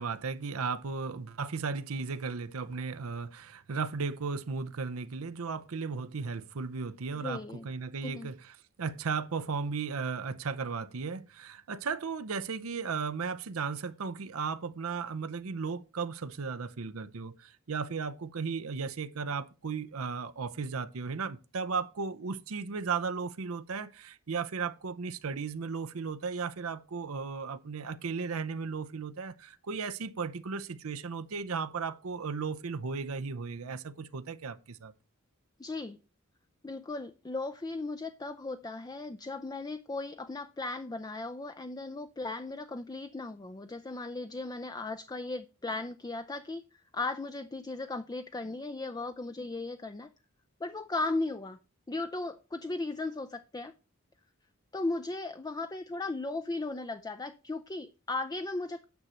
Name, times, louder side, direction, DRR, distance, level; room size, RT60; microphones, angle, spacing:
voice 1, 0.0-8.5 8.8-34.9, right 5 dB, 85° right, 0.7 m, -35 dB
voice 2, 7.1-7.7 8.0-8.3 35.6-36.0 36.6-50.1 50.6-51.6 51.9-53.7 54.7-58.9, left 2 dB, 20° left, 0.4 m, -36 dB
9.4 x 6.4 x 4.2 m
head